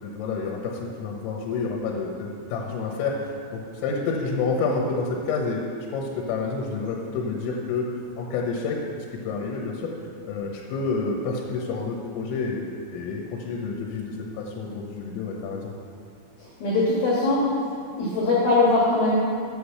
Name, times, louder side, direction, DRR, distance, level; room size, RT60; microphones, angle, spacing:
voice 1, 0.0-5.6 5.9-7.9 8.2-9.9 10.2-15.7, left 4 dB, 85° left, 0 dB, 3.7 m, -29 dB
voice 2, 16.6-17.5 18.0-19.2, left 2 dB, 60° left, -6 dB, 3.0 m, -21 dB
9.3 x 8.2 x 7.0 m, 2.4 s
omnidirectional pair, 5.8 m